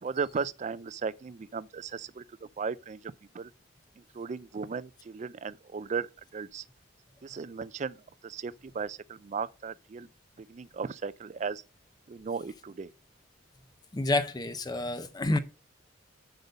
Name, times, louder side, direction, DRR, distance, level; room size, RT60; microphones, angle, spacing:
voice 1, 0.0-3.5 4.1-6.6 7.2-10.1 10.4-11.6 12.1-12.9, right 5 dB, 35° right, 0.3 m, -36 dB
voice 2, 13.9-15.4, left 2 dB, 20° left, 0.5 m, -28 dB
7.9 x 5.4 x 5.1 m
head